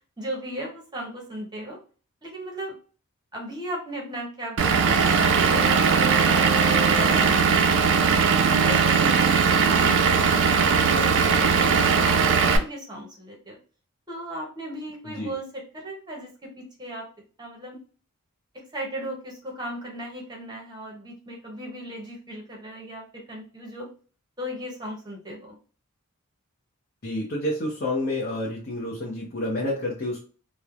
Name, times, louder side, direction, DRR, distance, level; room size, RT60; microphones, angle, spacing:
voice 1, 0.2-1.8 2.2-2.8 3.3-6.5 6.8-8.0 8.4-13.6 14.1-17.1 17.4-17.8 18.7-23.9 24.4-25.6, equal, 20° right, -1 dB, 0.7 m, -36 dB
Vehicle / Engine, 4.6-12.6, right 5 dB, 55° right, 0.4 m, -19 dB
voice 2, 27.0-30.2, left 1 dB, 45° left, -3 dB, 0.7 m, -29 dB
3.1 x 2.0 x 2.4 m, 0.39 s
head